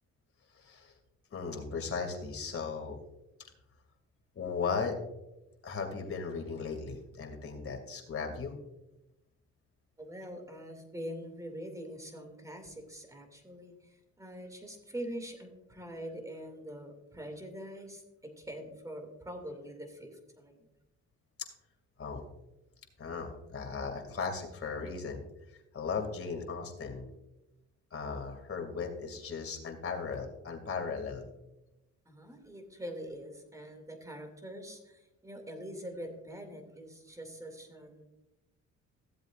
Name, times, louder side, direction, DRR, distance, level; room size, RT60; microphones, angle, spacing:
voice 1, 0.6-0.9 1.3-3.0 4.4-5.0 5.6-8.5 22.0-22.2 23.0-25.2 25.7-27.1 27.9-31.3, left 5 dB, 45° left, 3 dB, 2.5 m, -37 dB
voice 2, 10.0-20.7 32.1-38.1, equal, 10° right, 5 dB, 2.4 m, -44 dB
15.5 x 7.8 x 2.5 m, 0.93 s
cardioid pair, 90°, 30 cm